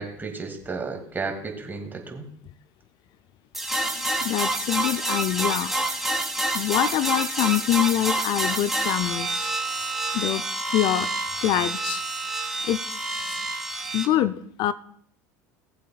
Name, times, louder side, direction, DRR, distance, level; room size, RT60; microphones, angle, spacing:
voice 1, 0.0-2.3, right 4 dB, 20° right, 3 dB, 2.2 m, -33 dB
sound 1, 3.5-14.1, right 2 dB, ahead, 1.7 m, -28 dB
voice 2, 4.0-5.7 6.5-9.6 10.1-10.5 10.7-11.1 11.4-12.0 12.6-12.8 13.2-13.4 13.9-14.7, left 12 dB, 55° left, 14 dB, 0.4 m, -25 dB
19.0 x 7.5 x 2.4 m, 0.64 s
hypercardioid pair, 75°, 9 cm